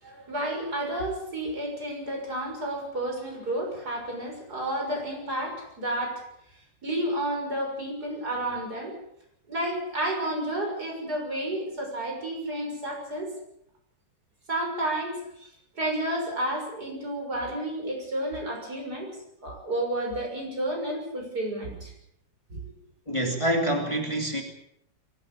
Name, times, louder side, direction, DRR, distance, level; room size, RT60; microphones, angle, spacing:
voice 1, 0.0-6.2 6.8-8.9 9.5-13.3 14.5-15.5 15.8-19.1 19.4-21.9 22.5-22.6, right 1 dB, 60° right, 1 dB, 7.1 m, -31 dB
voice 2, 23.1-24.4, right 1 dB, 15° left, 2 dB, 3.0 m, -26 dB
23.0 x 16.0 x 8.6 m, 0.75 s
omnidirectional pair, 1.9 m